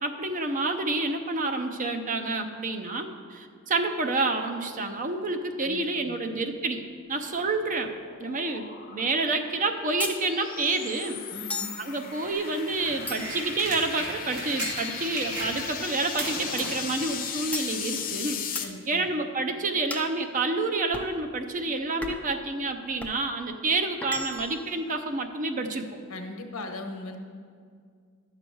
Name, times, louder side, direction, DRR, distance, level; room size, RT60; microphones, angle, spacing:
voice 1, 0.0-6.8 7.1-7.9 8.2-11.2 11.8-25.9, right 3 dB, 35° right, 5 dB, 0.6 m, -29 dB
voice 2, 5.6-6.2 11.3-12.1 18.6-19.1 26.1-27.2, left 2 dB, 70° left, 4 dB, 1.0 m, -40 dB
sound 1, 7.0-18.6, left 8 dB, 40° left, 0.7 m, -38 dB
sound 2, 10.0-10.2 11.5-11.8 13.1-13.5 14.6-15.5 16.6-16.9 17.5-17.8 18.5-18.8 19.9-20.1 20.9-21.2 22.0-22.3 23.0-23.2 24.0-24.6, left 2 dB, 5° left, 0.4 m, -36 dB
sound 3, 12.3-15.9 16.1-18.1 19.0-19.1, right 1 dB, 80° right, 2.7 m, -37 dB
11.5 x 6.8 x 4.6 m, 2.1 s
head